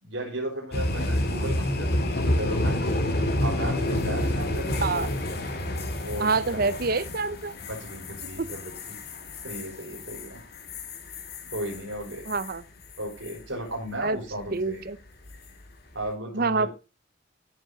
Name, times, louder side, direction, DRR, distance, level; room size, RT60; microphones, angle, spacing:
voice 1, 0.0-2.7 3.4-4.7 6.0-6.7 7.6-9.0 9.4-10.4 11.5-12.3 13.0-14.9 15.9-16.7, right 1 dB, 75° right, 4.7 m, -35 dB
sound 1, 0.7-12.6 12.9-13.3 15.3-15.6, left 1 dB, 55° left, 2.3 m, -29 dB
voice 2, 6.2-7.5 8.4-8.5 12.3-12.6 14.0-14.2 14.5-15.0 16.3-16.7, right 4 dB, 50° right, 0.7 m, -26 dB
14.0 x 7.3 x 4.0 m
head